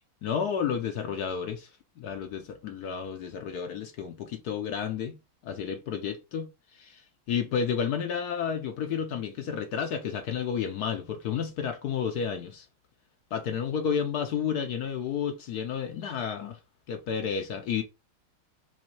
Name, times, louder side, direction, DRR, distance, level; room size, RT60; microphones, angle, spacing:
voice 1, 0.2-1.7 2.0-5.2 5.4-7.0 7.3-12.7 13.3-16.6 16.9-17.8, left 7 dB, 75° left, 0.9 m, -31 dB
4.4 x 2.7 x 4.4 m
omnidirectional pair, 2.3 m